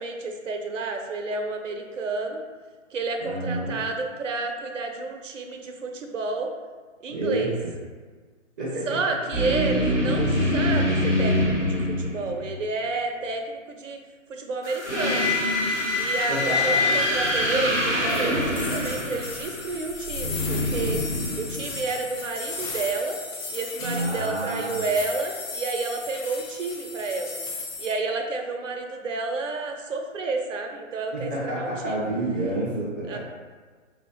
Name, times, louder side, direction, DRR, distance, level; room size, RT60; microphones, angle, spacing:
voice 1, 0.0-2.4 2.9-6.5 7.0-7.5 8.9-14.0 14.3-15.3 16.0-21.0 21.4-23.2 23.5-27.4 27.8-32.1 33.1-33.2, right 3 dB, 70° right, 4 dB, 0.7 m, -30 dB
voice 2, 3.2-3.8 7.1-7.5 8.6-8.8 16.3-16.8 23.8-24.7 31.1-33.2, right 1 dB, 15° right, -15 dB, 0.6 m, -29 dB
sound 1, 9.3-12.6 14.6-21.9, left 1 dB, 15° left, 0.9 m, -25 dB
sound 2, 18.1-27.9, left 3 dB, 80° left, 0.8 m, -36 dB
4.7 x 2.1 x 2.9 m, 1.5 s
hypercardioid pair, 155°, 39 cm